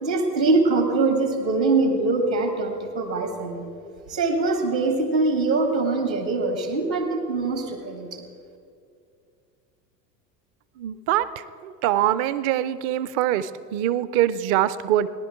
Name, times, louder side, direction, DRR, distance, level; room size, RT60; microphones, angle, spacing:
voice 1, 0.0-3.7 4.1-8.2, right 3 dB, 85° right, 5 dB, 2.2 m, -23 dB
voice 2, 10.8-11.3 11.6-15.1, right 12 dB, 30° right, 15 dB, 0.4 m, -23 dB
18.0 x 11.0 x 4.5 m, 2.3 s
figure-of-eight pair, 80°, 50 cm